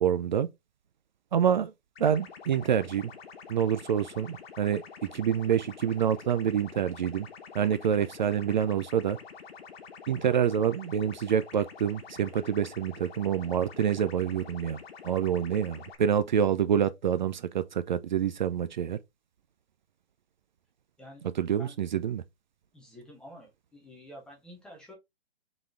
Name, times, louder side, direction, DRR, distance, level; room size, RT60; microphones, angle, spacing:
voice 1, 0.0-0.5 1.3-1.7 2.0-3.1 3.5-7.3 7.5-9.2 10.1-14.8 15.0-19.0 21.4-22.2, right 8 dB, 50° right, 0.4 m, -27 dB
sound 1, 1.9-15.9, left 6 dB, 70° left, 1.2 m, -47 dB
voice 2, 21.0-21.8 22.7-24.9, equal, 5° left, 0.5 m, -50 dB
3.9 x 3.6 x 3.3 m
hypercardioid pair, 155°, 31 cm